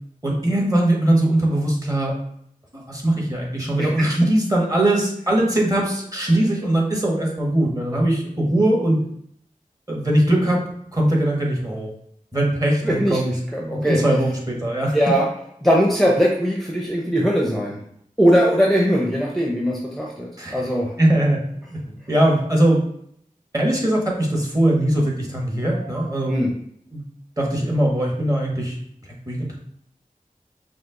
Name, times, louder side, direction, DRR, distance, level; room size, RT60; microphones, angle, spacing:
voice 1, 0.2-2.1 2.7-9.0 9.9-10.6 10.9-11.9 12.3-13.3 13.6-15.0 20.4-20.7 21.0-22.8 23.5-26.4 26.9-27.0 27.4-28.8 29.3-29.6, right 1 dB, 25° right, -2 dB, 1.2 m, -21 dB
voice 2, 3.8-4.1 12.8-13.2 13.5-14.0 14.9-15.3 15.6-17.8 18.2-20.9 25.9-26.5, equal, ahead, -2 dB, 0.7 m, -20 dB
5.0 x 2.0 x 3.8 m, 0.69 s
wide cardioid pair, 45°, 15 cm